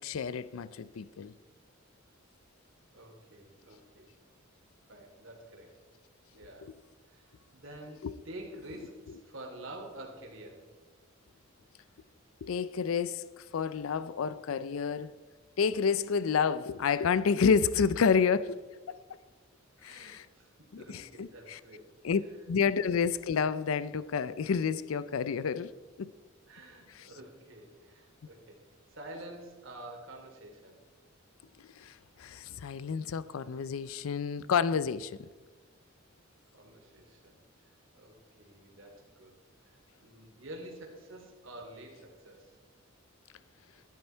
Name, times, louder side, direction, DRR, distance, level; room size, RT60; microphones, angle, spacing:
voice 1, 0.0-1.3 8.0-8.1 12.4-15.1 15.6-18.6 18.9-19.0 19.8-20.3 20.7-21.6 22.0-22.2 22.5-25.7 26.0-26.1 26.9-27.1 31.8-35.3, left 6 dB, 85° left, 0.4 m, -29 dB
voice 2, 2.9-4.1 4.9-5.8 6.3-6.7 7.1-10.7 19.8-21.9 22.2-22.3 22.7-22.8 26.5-30.8 36.5-37.4 37.6-39.4 39.6-42.6, right 1 dB, 70° right, 2.9 m, -48 dB
13.0 x 12.5 x 4.5 m
head